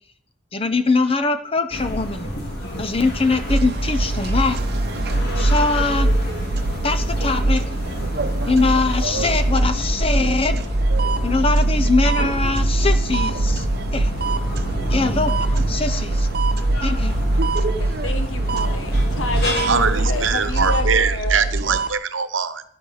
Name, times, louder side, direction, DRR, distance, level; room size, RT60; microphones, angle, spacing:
voice 1, 0.5-2.3 2.8-4.6 5.4-6.1 6.8-7.6 8.5-10.6 11.2-13.7 13.9-14.1 14.9-16.3 16.8-17.1, left 3 dB, 30° left, 8 dB, 0.7 m, -22 dB
sound 1, 1.7-20.8, equal, 55° left, 3.4 m, -30 dB
sound 2, 3.5-21.9, right 2 dB, 55° right, 0.8 m, -22 dB
voice 2, 17.8-21.5, left 3 dB, 80° left, 9 dB, 1.1 m, -29 dB
voice 3, 19.7-22.6, right 6 dB, 85° right, 12 dB, 1.0 m, -22 dB
12.5 x 10.5 x 4.9 m, 0.62 s
head